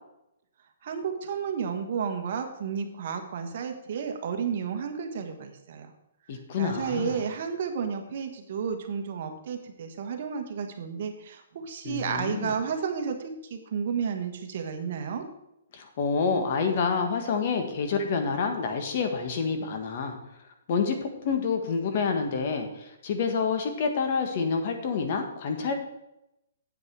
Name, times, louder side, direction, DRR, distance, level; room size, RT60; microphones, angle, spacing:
voice 1, 0.8-5.9 6.3-15.2, right 6 dB, 50° right, 5 dB, 1.4 m, -32 dB
voice 2, 6.3-7.2 11.8-12.5 15.7-20.2 20.7-25.7, left 5 dB, 45° left, 5 dB, 1.6 m, -28 dB
8.5 x 8.3 x 4.8 m, 0.85 s
hypercardioid pair, 160°, 0 cm